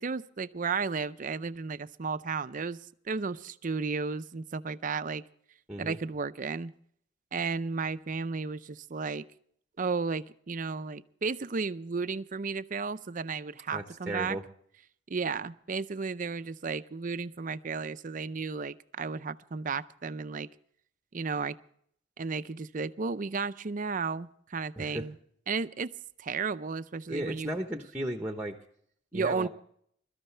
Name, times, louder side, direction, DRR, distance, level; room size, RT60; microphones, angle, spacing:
voice 1, 0.0-2.8 3.1-5.2 5.8-6.7 7.3-9.3 9.8-14.4 15.1-20.5 21.1-21.6 22.2-25.1 25.5-27.6 29.1-29.5, right 4 dB, 40° right, 13 dB, 0.5 m, -33 dB
voice 2, 13.7-14.4 24.8-25.1 27.1-28.6 29.1-29.5, right 1 dB, 10° right, 5 dB, 1.0 m, -35 dB
22.0 x 13.5 x 3.3 m, 0.65 s
head